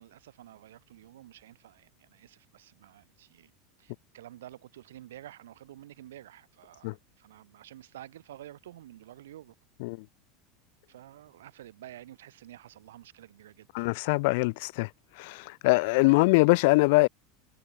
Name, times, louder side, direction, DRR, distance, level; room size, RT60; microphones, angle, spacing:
voice 1, 0.0-3.5 3.8-6.9 7.2-9.5 10.9-13.9 16.0-16.3, right 13 dB, 85° right, 3.6 m, -50 dB
voice 2, 13.7-14.9 15.2-17.1, left 26 dB, 70° left, 0.3 m, -23 dB
hypercardioid pair, 105°, 0 cm